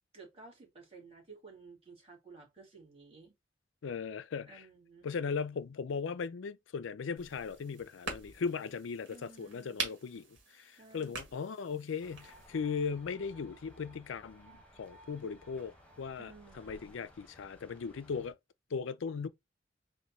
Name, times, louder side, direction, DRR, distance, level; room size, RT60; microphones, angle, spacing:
voice 1, 0.1-3.3 4.5-5.0 9.1-9.9 10.8-11.4 16.2-16.9, right 4 dB, 30° right, 2.5 m, -54 dB
voice 2, 3.8-4.6 5.0-10.3 10.5-18.3 18.7-19.3, left 5 dB, 80° left, 0.4 m, -38 dB
sound 1, 7.2-12.5, right 4 dB, 70° right, 1.9 m, -44 dB
sound 2, 12.0-18.3, equal, 5° left, 1.2 m, -58 dB
4.3 x 2.7 x 4.0 m
head